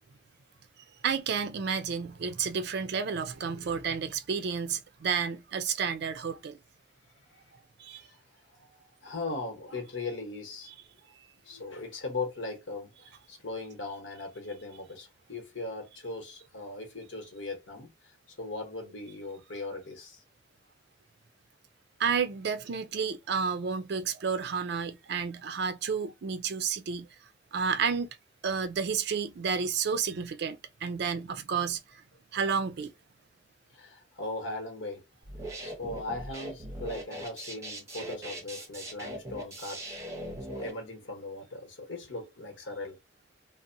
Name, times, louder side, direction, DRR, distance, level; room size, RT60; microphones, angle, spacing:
voice 1, 1.0-6.6 7.8-8.0 22.0-27.1 27.5-28.1 28.4-32.0 32.3-32.9, right 6 dB, 60° right, 0.4 m, -31 dB
voice 2, 9.0-10.7 11.4-20.2 33.7-35.0 35.6-39.9 40.5-43.0, left 2 dB, 85° left, 1.0 m, -39 dB
sound 1, 35.2-40.7, right 1 dB, 15° right, 0.7 m, -40 dB
2.6 x 2.0 x 2.6 m
head